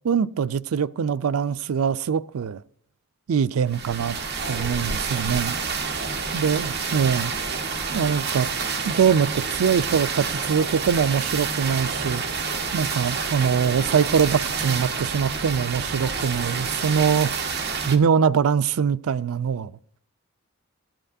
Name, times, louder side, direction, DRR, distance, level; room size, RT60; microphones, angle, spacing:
voice 1, 0.0-2.6 3.3-4.2 4.5-5.5 6.3-7.3 7.9-8.5 8.9-12.2 12.7-17.3 17.9-19.8, right 7 dB, 80° right, 0.4 m, -23 dB
sound 1, 3.7-18.0, right 5 dB, 50° right, 1.3 m, -28 dB
15.0 x 8.9 x 2.6 m
head